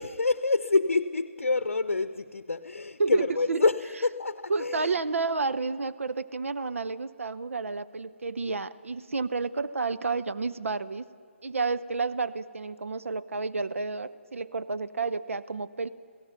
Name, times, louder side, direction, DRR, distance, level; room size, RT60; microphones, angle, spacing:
voice 1, 0.0-4.9, left 3 dB, 85° left, 12 dB, 0.7 m, -27 dB
voice 2, 3.0-3.6 4.5-11.0 11.4-15.9, right 4 dB, 80° right, 12 dB, 0.8 m, -30 dB
29.0 x 17.0 x 5.8 m, 2.1 s
figure-of-eight pair, 145°, 7 cm